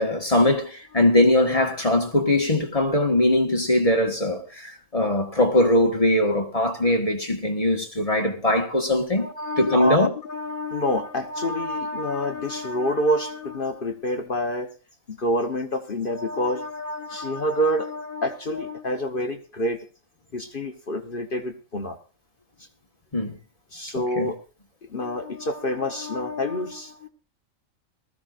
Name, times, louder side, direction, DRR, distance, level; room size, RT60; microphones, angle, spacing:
voice 1, 0.0-9.3 9.6-10.1 23.1-23.4 24.0-24.3, left 1 dB, 25° left, 1.7 m, -21 dB
voice 2, 9.2-14.7 15.1-19.8 20.3-22.0 23.7-24.3 24.9-27.1, left 1 dB, 45° left, 1.3 m, -27 dB
20.0 x 14.5 x 2.5 m
omnidirectional pair, 1.4 m